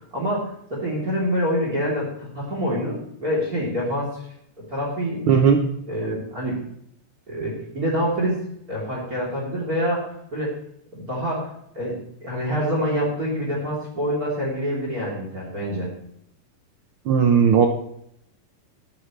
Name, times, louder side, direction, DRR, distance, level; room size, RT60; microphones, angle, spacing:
voice 1, 0.0-4.2 4.7-5.2 5.9-6.6 7.3-8.4 8.7-10.5 10.9-11.5 11.7-15.9, equal, 25° right, -3 dB, 3.9 m, -26 dB
voice 2, 5.3-5.6 17.1-17.7, right 7 dB, 75° right, 3 dB, 1.2 m, -16 dB
21.0 x 9.4 x 3.3 m, 0.73 s
omnidirectional pair, 3.7 m